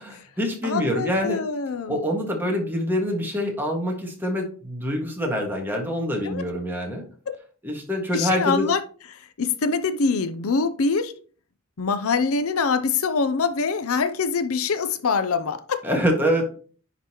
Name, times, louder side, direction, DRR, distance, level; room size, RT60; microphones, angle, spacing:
voice 1, 0.0-1.4 1.9-7.0 7.6-8.7 15.8-16.5, equal, 10° right, 1.7 m, -25 dB
voice 2, 0.6-2.0 6.2-6.4 7.3-7.4 8.1-8.8 9.4-11.1 11.8-15.8, left 4 dB, 70° left, 0.6 m, -24 dB
10.0 x 3.9 x 2.9 m
head